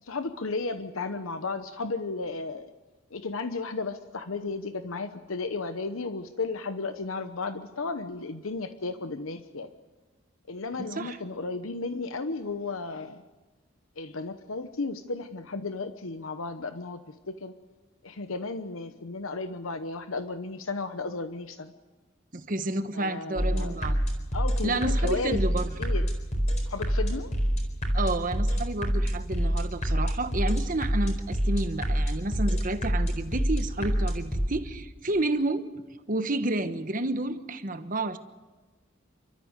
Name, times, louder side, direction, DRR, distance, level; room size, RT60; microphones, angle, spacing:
voice 1, 0.0-2.7 3.1-9.7 10.5-13.2 14.0-17.0 17.3-17.5 18.0-21.7 22.9-23.7 24.3-25.4 25.8-26.1 26.7-27.3, left 3 dB, 85° left, 9 dB, 1.0 m, -34 dB
voice 2, 10.8-11.2 22.3-24.0 24.6-25.8 27.9-35.7 36.1-38.2, right 2 dB, 40° right, 9 dB, 1.2 m, -30 dB
sound 1, 23.4-34.5, equal, 35° left, 4.3 m, -27 dB
29.5 x 13.5 x 8.1 m, 1.2 s
head